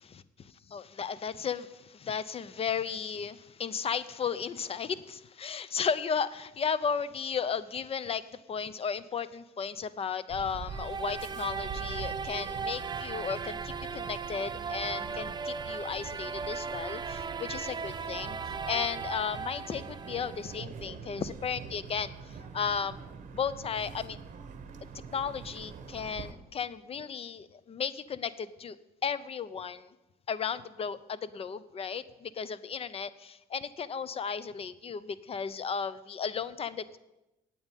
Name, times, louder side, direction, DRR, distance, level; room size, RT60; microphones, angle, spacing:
voice 1, 0.1-8.2 8.5-23.0 23.3-24.2 25.1-28.8 29.0-29.9 30.3-37.0, left 6 dB, 35° left, 17 dB, 0.7 m, -34 dB
sound 1, 10.3-26.3, right 6 dB, 50° right, 1.3 m, -44 dB
sound 2, 10.7-20.6, right 5 dB, 25° right, 0.6 m, -38 dB
9.1 x 8.6 x 9.1 m, 0.97 s
cardioid pair, 110°, 17 cm